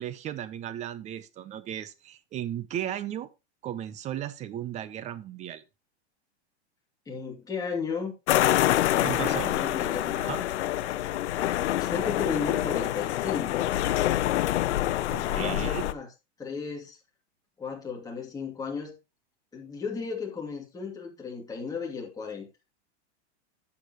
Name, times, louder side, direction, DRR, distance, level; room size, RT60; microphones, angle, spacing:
voice 1, 0.0-3.3 3.6-5.6 9.0-9.5 10.2-10.4 15.1-15.9, right 11 dB, 20° right, 0.6 m, -35 dB
voice 2, 7.1-8.1 8.9-10.3 11.8-13.7 14.8-16.1 16.4-17.0 17.6-18.9 19.5-22.5, left 5 dB, 10° left, 2.6 m, -35 dB
sound 1, 8.3-15.9, left 14 dB, 85° left, 0.7 m, -26 dB
11.5 x 7.2 x 3.0 m
supercardioid pair, 150°, 34 cm